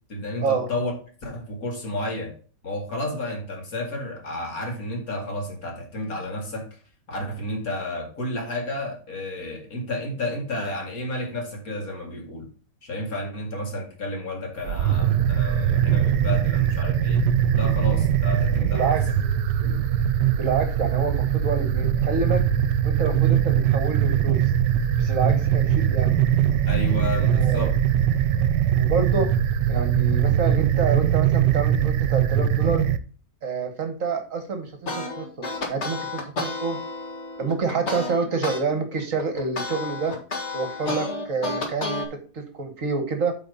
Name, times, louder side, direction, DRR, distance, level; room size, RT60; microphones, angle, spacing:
voice 1, 0.1-0.9 1.2-2.3 2.6-6.8 7.1-12.5 12.8-17.2 17.5-19.0 19.6-19.8 26.7-27.7, left 1 dB, 55° left, 2.5 m, -31 dB
sound 1, 14.6-33.0, right 10 dB, 85° right, 1.3 m, -21 dB
voice 2, 18.7-19.0 20.4-22.5 22.8-24.4 25.0-26.2 26.9-27.7 28.8-29.3 29.7-32.8 33.4-35.3 35.7-36.8 37.4-40.2 40.5-43.3, right 4 dB, 55° right, 1.5 m, -28 dB
sound 2, 34.9-38.6 39.0-42.1, left 3 dB, 40° left, 1.9 m, -31 dB
8.6 x 4.1 x 5.3 m
omnidirectional pair, 1.8 m